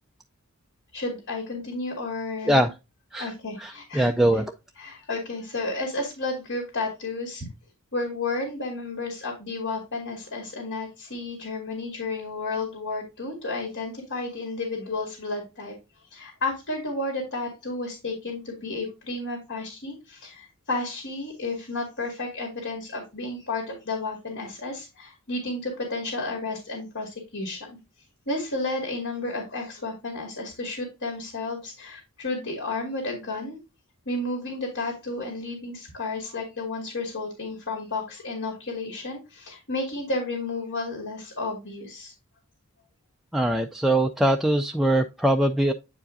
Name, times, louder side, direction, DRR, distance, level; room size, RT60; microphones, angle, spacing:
voice 1, 0.9-2.7 3.2-4.1 4.8-7.5 7.9-15.7 16.1-27.8 28.3-33.6 34.1-42.1, left 2 dB, 60° left, 1 dB, 2.4 m, -32 dB
voice 2, 3.6-4.5 43.3-45.7, right 1 dB, ahead, 3 dB, 0.3 m, -22 dB
8.7 x 4.8 x 2.5 m, 0.26 s
head